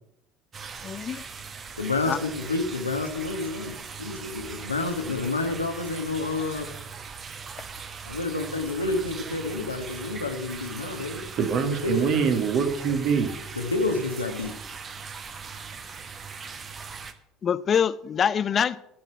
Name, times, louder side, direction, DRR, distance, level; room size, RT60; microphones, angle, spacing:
sound 1, 0.5-17.1, right 5 dB, 35° right, 1.1 m, -40 dB
voice 1, 0.8-1.2 2.1-2.2 17.4-18.8, left 8 dB, 35° left, 16 dB, 0.6 m, -24 dB
voice 2, 1.8-6.7 8.1-11.3 11.6-12.1 13.6-14.5, left 3 dB, 85° left, 6 dB, 1.2 m, -29 dB
voice 3, 11.4-13.4, right 6 dB, 50° right, 5 dB, 1.8 m, -24 dB
13.0 x 5.9 x 8.1 m, 0.80 s
figure-of-eight pair, 65°, 0 cm